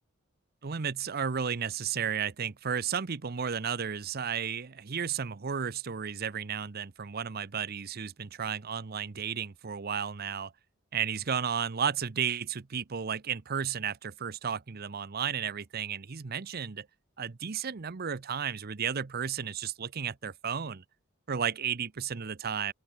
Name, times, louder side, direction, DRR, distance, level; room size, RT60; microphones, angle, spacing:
voice 1, 0.6-10.5 10.9-16.9 17.2-20.8 21.3-22.7, right 7 dB, 50° right, 0.7 m, -33 dB
open air
head